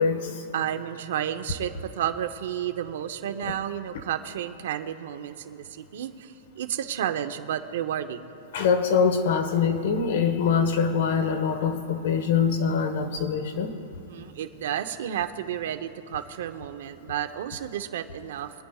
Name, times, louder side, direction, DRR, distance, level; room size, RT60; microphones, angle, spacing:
voice 1, 0.0-0.4 3.4-3.5 8.5-13.7, left 6 dB, 60° left, 7 dB, 1.2 m, -24 dB
voice 2, 0.5-8.3 14.1-18.5, right 10 dB, 60° right, 8 dB, 0.8 m, -31 dB
25.0 x 10.0 x 2.4 m, 3.0 s
supercardioid pair, 175°, 0 cm